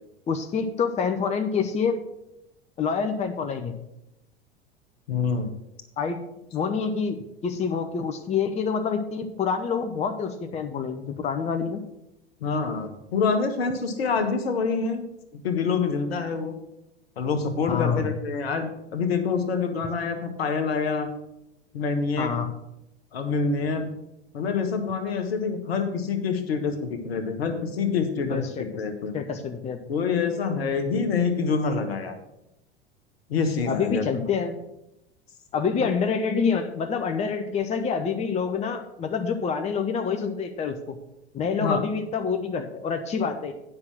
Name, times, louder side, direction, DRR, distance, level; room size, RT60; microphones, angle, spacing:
voice 1, 0.3-2.0 2.8-3.7 6.0-6.2 6.5-11.8 17.7-18.1 22.2-22.5 28.3-28.7 29.1-29.8 33.7-34.6 35.5-41.0 41.3-43.5, left 6 dB, 20° left, 6 dB, 0.8 m, -27 dB
voice 2, 5.1-5.5 12.4-15.0 15.3-16.5 17.2-21.1 21.7-22.3 23.1-23.9 24.3-29.1 29.9-32.1 33.3-34.0 35.8-35.9 41.6-41.8, left 5 dB, 65° left, 7 dB, 1.4 m, -26 dB
9.6 x 5.7 x 6.1 m, 0.86 s
figure-of-eight pair, 80°, 32 cm